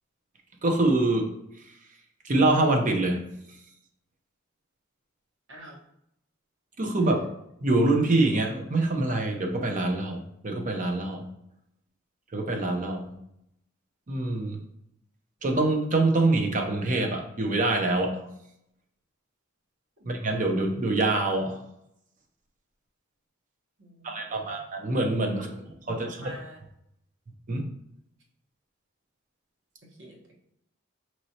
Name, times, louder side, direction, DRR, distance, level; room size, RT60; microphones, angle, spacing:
voice 1, 0.6-1.3 2.2-3.2 6.8-7.2 7.6-11.2 12.3-13.1 14.1-14.6 15.4-18.2 20.0-21.6 24.0-25.5 25.9-26.3 27.5-27.6, right 2 dB, 40° right, 2 dB, 0.7 m, -25 dB
voice 2, 5.5-5.8 20.0-20.1 23.8-24.6 25.3-26.6 29.8-30.3, right 1 dB, 65° right, -2 dB, 1.2 m, -48 dB
5.2 x 3.1 x 2.8 m, 0.78 s
head